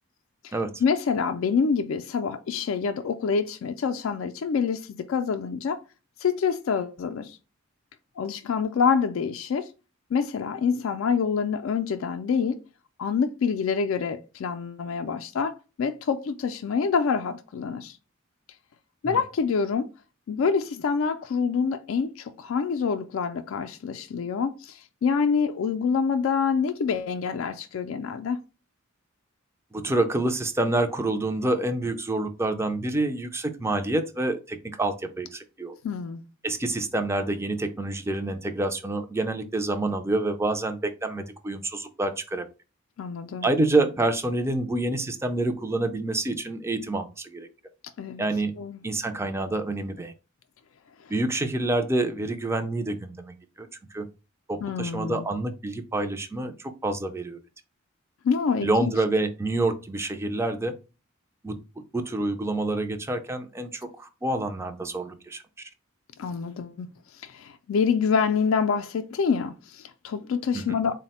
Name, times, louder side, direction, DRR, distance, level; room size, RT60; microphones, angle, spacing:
voice 1, 0.8-5.8 6.2-7.4 8.2-9.7 10.1-12.6 13.0-18.0 19.0-19.9 20.3-28.4 35.8-36.2 43.0-43.5 48.0-48.2 48.6-48.8 54.6-55.3 58.2-58.9 66.2-66.9 67.2-70.9, left 6 dB, 70° left, 0.3 m, -26 dB
voice 2, 29.7-35.8 36.4-42.5 43.4-47.5 48.2-48.5 48.8-50.1 51.1-54.1 54.5-57.4 58.6-60.7 61.4-65.7 70.5-70.8, right 2 dB, 10° right, 0.4 m, -27 dB
4.0 x 2.1 x 4.1 m
head